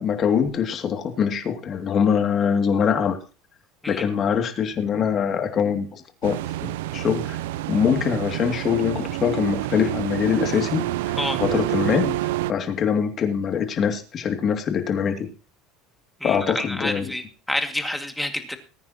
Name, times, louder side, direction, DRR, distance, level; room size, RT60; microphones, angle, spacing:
voice 1, 0.0-3.2 3.9-6.4 6.6-7.4 7.7-15.3 16.2-17.1, left 7 dB, 40° left, 6 dB, 2.6 m, -23 dB
sound 1, 6.2-12.5, right 16 dB, 85° right, 0.5 m, -28 dB
voice 2, 16.2-18.6, left 1 dB, 5° left, 6 dB, 2.2 m, -28 dB
20.0 x 9.5 x 3.0 m, 0.34 s
supercardioid pair, 115°, 0 cm